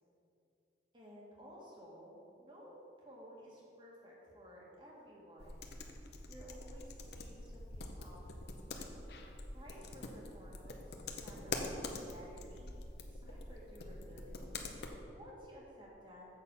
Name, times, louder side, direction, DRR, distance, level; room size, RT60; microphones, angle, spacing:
voice 1, 0.9-5.7 6.0-8.3 9.5-14.6 15.1-16.3, equal, 25° right, -4 dB, 1.8 m, -55 dB
sound 1, 5.4-14.9, left 2 dB, 65° left, 0.8 m, -45 dB
7.6 x 6.4 x 5.5 m, 2.7 s
head